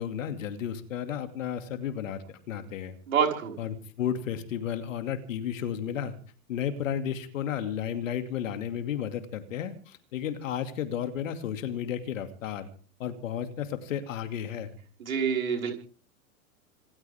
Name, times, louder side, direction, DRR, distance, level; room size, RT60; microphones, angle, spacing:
voice 1, 0.0-3.0 3.6-6.1 6.5-12.7 13.0-14.7, left 9 dB, 65° left, 8 dB, 2.6 m, -33 dB
voice 2, 3.1-3.6 15.0-15.7, right 7 dB, 70° right, 2 dB, 5.2 m, -26 dB
27.0 x 14.0 x 3.6 m, 0.40 s
figure-of-eight pair, 100°, 43 cm